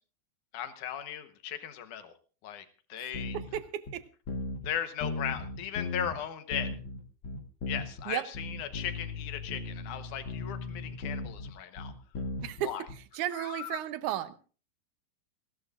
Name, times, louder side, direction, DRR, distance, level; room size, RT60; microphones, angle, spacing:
voice 1, 0.5-2.1 2.4-3.4 4.6-6.7 7.7-11.9 12.6-12.8 13.3-13.8, left 9 dB, 90° left, 10 dB, 2.6 m, -37 dB
sound 1, 3.1-3.6 3.9-4.0 4.3-4.7 5.0-6.2 6.5-8.0 8.3-12.9, left 3 dB, 45° left, 2.0 m, -37 dB
voice 2, 3.3-4.0 8.1-8.2 12.4-12.7 13.2-14.4, right 12 dB, 80° right, 12 dB, 2.3 m, -34 dB
29.5 x 12.5 x 2.5 m, 0.39 s
omnidirectional pair, 3.5 m